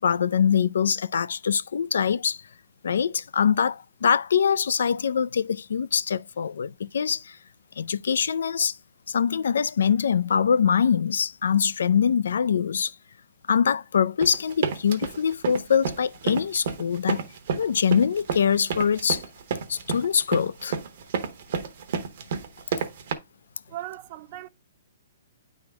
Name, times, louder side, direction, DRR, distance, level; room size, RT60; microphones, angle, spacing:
voice 1, 0.0-2.4 2.8-7.4 7.8-8.8 9.1-12.9 13.5-17.3 17.5-19.2 19.7-20.8, left 7 dB, 75° left, 0.3 m, -23 dB
sound 1, 14.2-23.1, right 6 dB, 45° right, 0.9 m, -30 dB
voice 2, 23.7-24.5, right 14 dB, 30° right, 0.4 m, -38 dB
9.1 x 3.6 x 3.4 m
hypercardioid pair, 170°, 0 cm